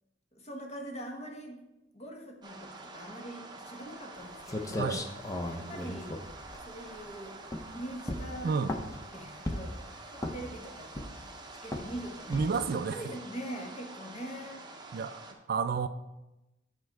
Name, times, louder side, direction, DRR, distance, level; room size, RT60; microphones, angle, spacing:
voice 1, 0.3-1.6 1.9-5.0 5.5-6.1 6.6-7.4 7.7-8.6 9.1-9.8 10.1-10.9 11.6-14.6, right 1 dB, 35° left, 1 dB, 1.2 m, -43 dB
sound 1, 2.4-15.3, right 2 dB, 25° right, 0.7 m, -47 dB
sound 2, 4.2-4.3 4.5-7.1 7.5-7.7 8.1-9.0 9.5-9.8 10.2-10.6 10.9-11.3 11.7-11.9 12.3-12.7, left 1 dB, 20° left, 0.6 m, -36 dB
voice 2, 12.3-13.0 14.9-15.2 15.5-15.9, right 5 dB, 55° right, 12 dB, 0.3 m, -30 dB
8.6 x 4.4 x 4.6 m, 0.99 s
head